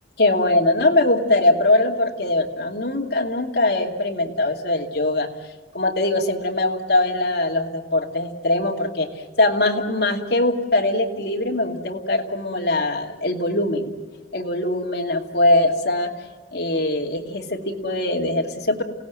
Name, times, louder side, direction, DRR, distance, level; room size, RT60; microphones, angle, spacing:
voice 1, 0.2-5.3 5.7-9.1 9.4-13.9 14.3-16.1 16.5-18.8, left 2 dB, 65° left, 1 dB, 2.6 m, -21 dB
29.0 x 17.5 x 9.3 m, 1.3 s
head